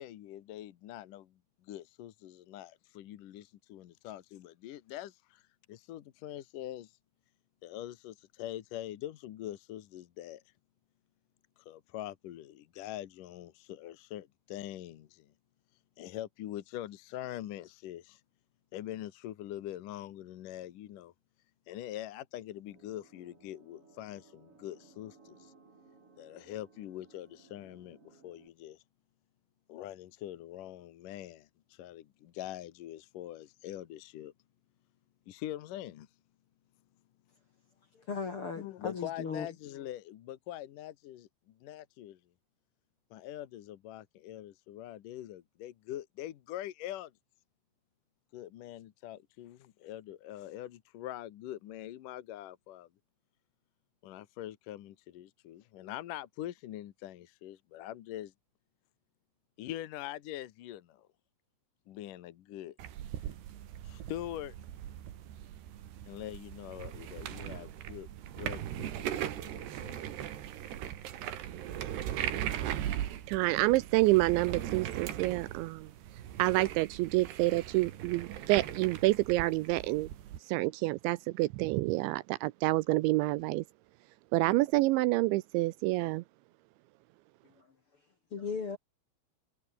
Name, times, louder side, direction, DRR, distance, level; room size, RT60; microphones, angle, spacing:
voice 1, 0.0-1.3 1.6-5.4 5.7-6.9 7.6-10.4 11.6-15.3 16.0-18.2 18.7-21.1 21.7-25.5 26.2-28.8 29.7-34.3 35.3-36.1 38.6-42.2 43.1-47.1 48.3-52.9 54.0-58.3 59.6-61.1 61.9-62.8 63.8-64.6 66.1-70.1, left 13 dB, 70° left, 2.0 m, -43 dB
sound 1, 22.7-28.5, right 4 dB, 30° right, 5.1 m, -61 dB
voice 2, 37.9-39.5 87.6-87.7 88.3-88.8, left 5 dB, 50° left, 1.7 m, -37 dB
sound 2, 62.8-80.4, right 11 dB, 65° right, 3.8 m, -39 dB
voice 3, 73.3-75.9 76.4-80.1 80.5-83.6 84.3-86.2, right 20 dB, 80° right, 2.8 m, -28 dB
omnidirectional pair, 5.6 m